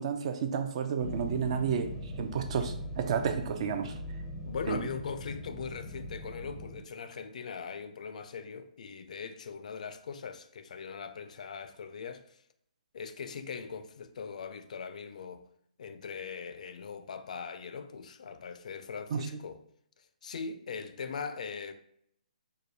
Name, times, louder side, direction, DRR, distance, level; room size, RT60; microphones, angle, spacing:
voice 1, 0.0-1.9 2.2-3.9 4.7-4.8 19.1-19.4, right 7 dB, 45° right, 0.4 m, -31 dB
sound 1, 1.0-6.8, left 1 dB, 5° left, 0.5 m, -41 dB
voice 2, 4.4-12.4 12.9-15.4 15.8-19.6 20.2-21.7, left 5 dB, 55° left, 0.4 m, -40 dB
4.7 x 2.2 x 2.6 m
figure-of-eight pair, 140°, 5 cm